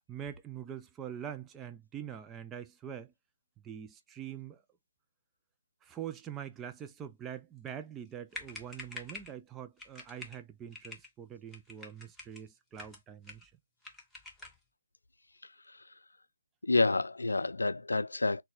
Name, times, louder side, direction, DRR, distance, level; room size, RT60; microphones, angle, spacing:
voice 1, 0.1-3.1 3.6-4.6 5.8-13.5, right 9 dB, 10° right, 0.4 m, -44 dB
sound 1, 8.0-8.1 8.3-9.4 9.8-10.4 10.7-11.1 11.5-12.4 12.7-13.5 13.8-14.6, left 2 dB, 5° left, 0.8 m, -47 dB
voice 2, 16.6-18.4, left 3 dB, 85° left, 0.4 m, -29 dB
4.1 x 2.2 x 3.8 m
figure-of-eight pair, 150°, 0 cm